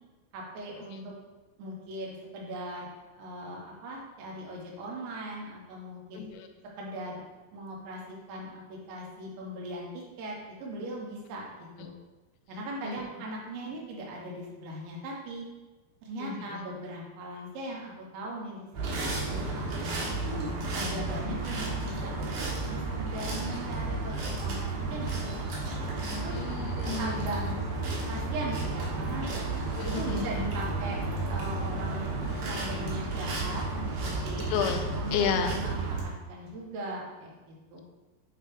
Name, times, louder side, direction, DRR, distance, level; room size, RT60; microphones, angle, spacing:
voice 1, 0.3-1.1 1.6-6.2 6.8-7.2 7.5-11.9 12.5-15.5 16.0-18.7 19.0-19.7 20.3-22.3 22.6-25.6 26.2-26.4 27.0-27.4 28.1-29.3 29.8-31.0 31.3-32.1 32.4-34.4 34.9-37.8, right 1 dB, 90° right, -2 dB, 3.4 m, -39 dB
voice 2, 6.2-6.5 12.8-13.1 16.2-16.6 26.3-27.6 29.8-30.5 34.5-34.8 35.1-35.5, left 6 dB, 90° left, 5 dB, 2.9 m, -32 dB
sound 1, 18.7-36.0, right 2 dB, 70° right, 2.0 m, -32 dB
9.0 x 3.3 x 3.1 m, 1.2 s
omnidirectional pair, 5.1 m